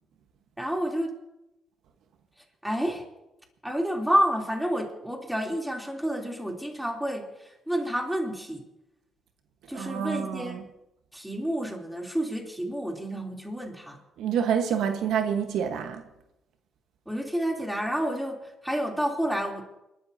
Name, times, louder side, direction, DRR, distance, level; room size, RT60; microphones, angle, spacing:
voice 1, 0.6-1.1 2.6-3.0 3.6-8.6 9.7-10.6 11.1-14.0 17.0-19.6, equal, 5° right, 3.1 m, -29 dB
voice 2, 9.7-10.5 14.2-16.0, right 8 dB, 80° right, 1.3 m, -27 dB
28.5 x 12.5 x 2.8 m
cardioid pair, 90°, 0 cm